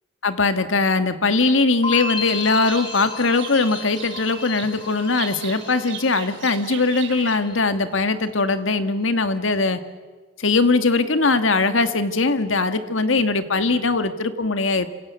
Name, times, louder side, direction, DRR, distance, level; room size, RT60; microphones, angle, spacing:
voice 1, 0.2-9.8 10.4-14.9, left 3 dB, 90° left, 10 dB, 1.8 m, -20 dB
sound 1, 1.8-6.9 7.2-7.8, left 4 dB, 25° left, 1.9 m, -33 dB
Livestock farm animals working animals, 2.3-7.4, right 9 dB, 75° right, 2.6 m, -38 dB
27.0 x 26.5 x 8.3 m, 1.4 s
head